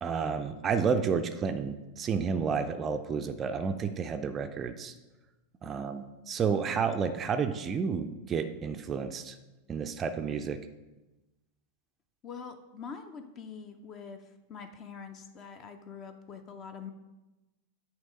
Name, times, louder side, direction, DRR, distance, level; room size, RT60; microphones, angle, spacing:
voice 1, 0.0-4.9 5.6-9.4 9.7-10.6, right 6 dB, 25° right, 7 dB, 0.4 m, -31 dB
voice 2, 12.2-14.2 14.5-16.9, left 6 dB, 30° left, 8 dB, 0.6 m, -44 dB
8.7 x 3.1 x 5.2 m, 1.1 s
figure-of-eight pair, 90°, 0 cm